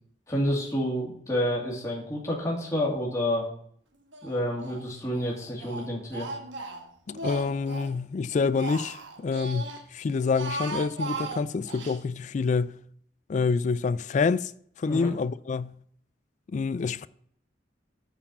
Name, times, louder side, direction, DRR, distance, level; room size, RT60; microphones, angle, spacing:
voice 1, 0.3-3.5 4.2-6.3 14.8-15.1, equal, 15° left, 2.3 m, -29 dB
Speech, 4.1-4.8 5.1-8.0 8.3-9.8 10.2-12.0, right 3 dB, 90° right, 1.2 m, -37 dB
voice 2, 7.1-12.8 13.3-14.5 14.8-15.8 16.5-17.1, left 4 dB, 40° left, 0.3 m, -27 dB
8.9 x 4.8 x 7.1 m
head